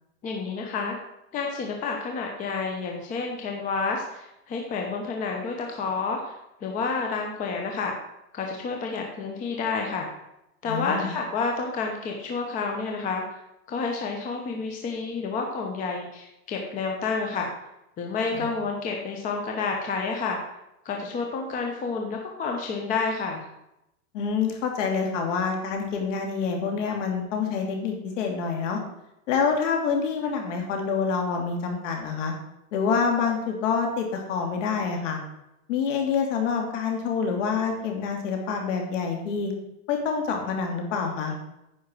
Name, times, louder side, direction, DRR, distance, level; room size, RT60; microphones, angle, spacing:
voice 1, 0.2-1.0 1.3-6.3 6.6-7.9 8.3-10.1 10.6-13.4 13.7-17.5 18.0-20.4 20.8-23.4, left 4 dB, 20° left, 1 dB, 0.9 m, -29 dB
voice 2, 10.6-11.1 18.3-18.5 24.1-28.8 29.3-32.3 32.7-35.2 35.7-39.5 39.9-41.3, left 5 dB, 55° left, 2 dB, 2.8 m, -27 dB
9.8 x 5.4 x 7.6 m, 0.86 s
supercardioid pair, 160°, 44 cm